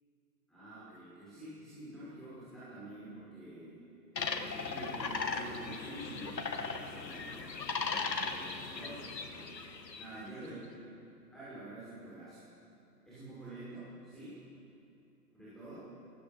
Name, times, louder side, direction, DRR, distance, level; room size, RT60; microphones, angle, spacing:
voice 1, 0.5-3.7 4.3-9.5 10.0-10.7 11.3-12.4 13.0-14.4 15.3-15.9, right 1 dB, ahead, -12 dB, 6.2 m, -48 dB
sound 1, 4.2-10.2, left 4 dB, 90° left, 2.2 m, -38 dB
22.0 x 17.5 x 7.2 m, 2.8 s
hypercardioid pair, 150°, 49 cm